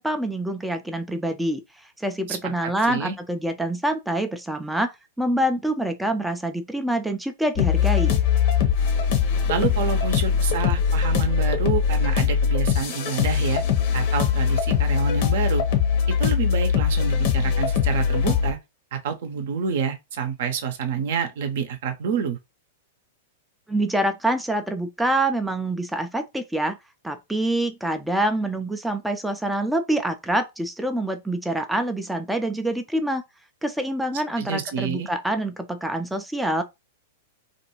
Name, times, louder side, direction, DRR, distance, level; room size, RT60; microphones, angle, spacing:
voice 1, 0.0-1.6 2.0-8.2 23.7-26.8 27.0-33.2 33.6-36.6, right 1 dB, 5° right, 0.4 m, -26 dB
voice 2, 2.3-3.2 9.5-13.6 13.9-15.6 16.1-18.6 18.9-22.4 34.4-35.1, right 6 dB, 65° right, 0.6 m, -28 dB
sound 1, 7.6-18.5, left 7 dB, 55° left, 0.8 m, -21 dB
2.5 x 2.2 x 2.9 m
hypercardioid pair, 110°, 0 cm